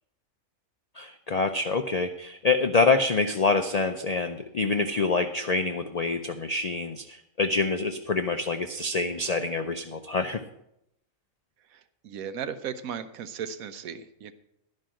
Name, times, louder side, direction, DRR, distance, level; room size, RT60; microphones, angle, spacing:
voice 1, 1.0-10.4, left 3 dB, 85° left, 6 dB, 0.3 m, -26 dB
voice 2, 11.7-14.3, right 7 dB, 85° right, 11 dB, 1.2 m, -36 dB
11.5 x 5.3 x 7.5 m, 0.80 s
omnidirectional pair, 1.4 m